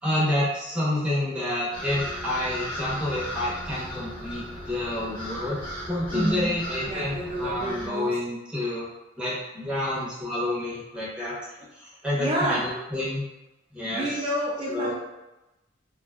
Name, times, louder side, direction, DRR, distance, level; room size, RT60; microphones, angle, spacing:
voice 1, 0.0-5.6 5.9-8.9 9.2-11.4 11.7-13.2 13.7-14.2 14.7-14.9, left 1 dB, 5° right, -8 dB, 0.7 m, -28 dB
sound 1, 1.7-7.9, equal, 25° left, 0.9 m, -37 dB
voice 2, 6.1-6.6 6.9-8.2 12.2-12.6 13.9-15.0, right 1 dB, 30° right, -5 dB, 0.4 m, -29 dB
2.5 x 2.3 x 2.2 m, 0.98 s
head